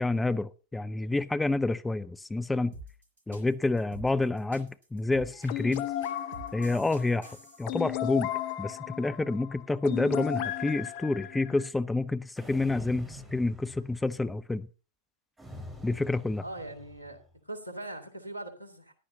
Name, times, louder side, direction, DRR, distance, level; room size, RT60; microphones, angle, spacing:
voice 1, 0.0-2.7 3.3-5.9 6.5-7.3 7.6-8.3 8.6-14.7 15.8-16.4, left 2 dB, 10° left, 0.5 m, -28 dB
sound 1, 2.7-7.8, right 2 dB, 65° right, 5.0 m, -47 dB
sound 2, 5.5-11.7, left 12 dB, 45° left, 0.8 m, -35 dB
sound 3, 12.4-14.2 15.4-17.2, equal, 10° right, 4.4 m, -46 dB
voice 2, 16.4-18.9, right 2 dB, 85° left, 2.2 m, -41 dB
15.0 x 11.5 x 2.7 m
figure-of-eight pair, 90°, 0 cm